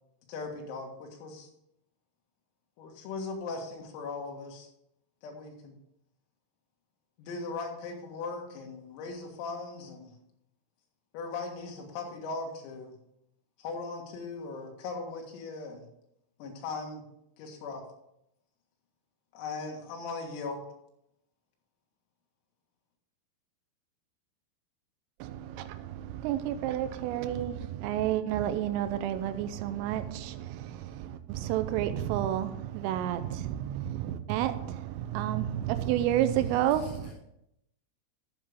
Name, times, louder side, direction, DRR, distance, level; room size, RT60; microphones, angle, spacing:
voice 1, 0.3-1.5 2.8-4.7 5.2-5.8 7.2-10.1 11.1-13.0 13.6-15.9 16.4-17.0 17.4-17.8 19.3-20.6, left 3 dB, 85° left, 4.5 m, -38 dB
voice 2, 25.2-37.1, right 11 dB, 85° right, 3.3 m, -30 dB
voice 3, 36.2-37.1, equal, 40° right, 3.6 m, -54 dB
12.0 x 8.3 x 3.6 m
omnidirectional pair, 6.0 m